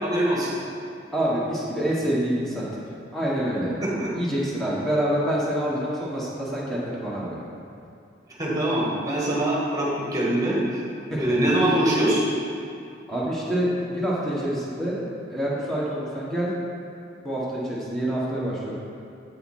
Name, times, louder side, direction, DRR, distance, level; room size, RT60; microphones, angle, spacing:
voice 1, 0.0-0.5 3.8-4.1 8.4-10.8 11.1-12.2, right 1 dB, 20° right, -5 dB, 1.6 m, -23 dB
voice 2, 1.1-2.7 3.1-3.7 4.1-7.4 11.1-11.5 13.1-15.0 15.3-16.5 17.2-18.8, equal, ahead, -7 dB, 1.6 m, -26 dB
8.5 x 5.6 x 4.3 m, 2.5 s
head